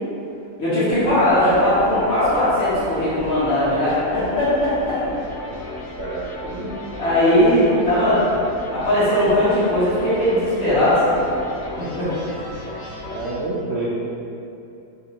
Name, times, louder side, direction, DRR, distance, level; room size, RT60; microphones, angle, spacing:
voice 1, 0.6-5.0 6.4-6.7 7.0-8.2 8.7-11.2 11.8-12.1, left 1 dB, 40° left, -13 dB, 1.7 m, -19 dB
sound 1, 0.9-13.3, left 1 dB, 65° left, 0.8 m, -34 dB
voice 2, 6.0-6.3 13.1-13.9, right 2 dB, 80° right, -6 dB, 0.6 m, -27 dB
5.0 x 2.8 x 3.0 m, 2.8 s
omnidirectional pair, 1.7 m